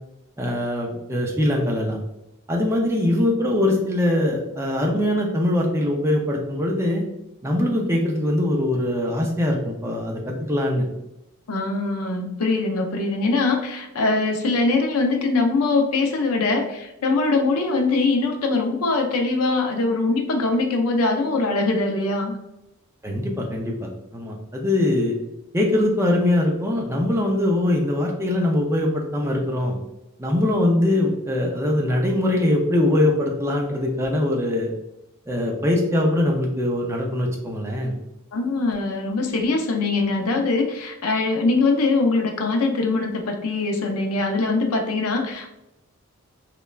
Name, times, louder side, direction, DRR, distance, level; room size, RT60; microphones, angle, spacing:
voice 1, 0.4-2.0 2.5-7.0 7.4-10.8 23.0-25.2 25.5-29.8 30.2-34.7 35.3-38.0, left 1 dB, 10° right, 0 dB, 0.4 m, -22 dB
voice 2, 11.5-22.3 38.3-45.5, left 3 dB, 75° left, 3 dB, 0.5 m, -22 dB
3.0 x 2.2 x 2.3 m, 0.89 s
head